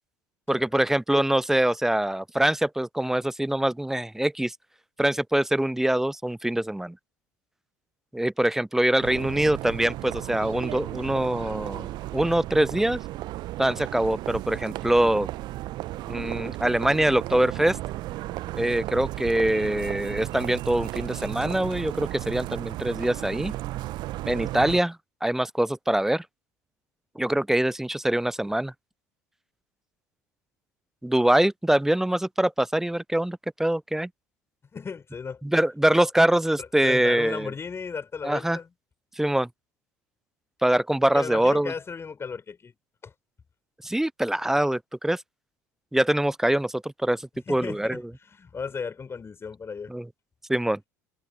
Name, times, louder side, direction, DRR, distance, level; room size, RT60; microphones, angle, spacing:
voice 1, 0.5-4.5 5.0-7.0 8.1-13.0 13.6-15.3 16.1-17.8 18.5-23.5 24.3-26.2 27.2-28.7 31.0-34.1 35.4-37.5 38.2-38.6 39.2-39.5 40.6-41.7 43.8-45.2 45.9-47.2 47.5-48.0 49.9-50.1 50.5-50.8, right 1 dB, 5° right, 0.4 m, -24 dB
sound 1, 9.0-24.8, right 17 dB, 55° right, 0.7 m, -34 dB
voice 2, 34.7-35.4 36.6-38.7 41.1-42.8 43.0-43.1 47.5-49.9, left 5 dB, 30° left, 5.5 m, -35 dB
hypercardioid pair, 70°, 9 cm